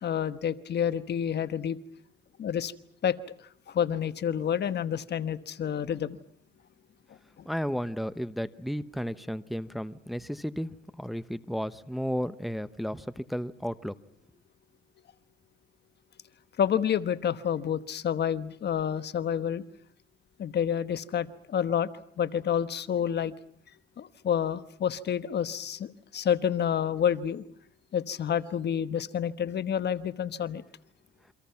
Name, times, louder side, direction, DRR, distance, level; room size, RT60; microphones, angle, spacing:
voice 1, 0.0-1.8 2.4-2.7 3.0-3.2 3.7-6.2 16.6-19.6 20.4-21.9 22.2-23.3 24.0-27.4 27.9-30.6, left 8 dB, 60° left, 1.2 m, -29 dB
voice 2, 7.5-13.9, equal, ahead, 1.0 m, -33 dB
28.5 x 25.0 x 5.9 m
cardioid pair, 90°, 20 cm